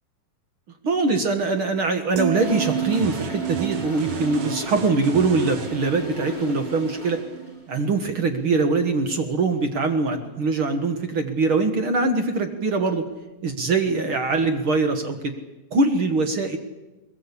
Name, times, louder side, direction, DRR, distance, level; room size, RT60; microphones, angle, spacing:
voice 1, 0.8-7.2 7.7-13.0 13.4-15.3 15.7-16.6, right 3 dB, 50° right, 7 dB, 1.7 m, -23 dB
sound 1, 2.2-8.4 8.8-9.1, right 10 dB, 70° right, 2.6 m, -33 dB
Toilet flush, 2.4-7.6, equal, 15° right, 2.8 m, -35 dB
sound 2, 2.9-5.7, right 10 dB, 90° right, 1.4 m, -36 dB
22.0 x 21.0 x 8.5 m, 1.1 s
omnidirectional pair, 4.1 m